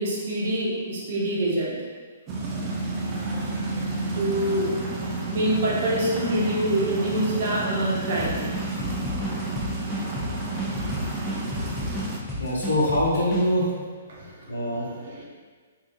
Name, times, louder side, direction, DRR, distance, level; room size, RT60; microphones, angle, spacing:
voice 1, 0.0-1.8 4.1-5.0 5.3-8.4 12.3-12.4 14.1-14.3 15.0-15.2, right 1 dB, 55° right, -5 dB, 0.8 m, -26 dB
sound 1, 2.3-12.2, right 2 dB, 30° right, 0.5 m, -31 dB
sound 2, 8.2-13.4, left 1 dB, 5° left, 0.8 m, -32 dB
voice 2, 12.4-13.7 14.5-14.9, equal, 80° left, -4 dB, 0.9 m, -23 dB
3.3 x 2.7 x 2.5 m, 1.5 s
figure-of-eight pair, 125°, 0 cm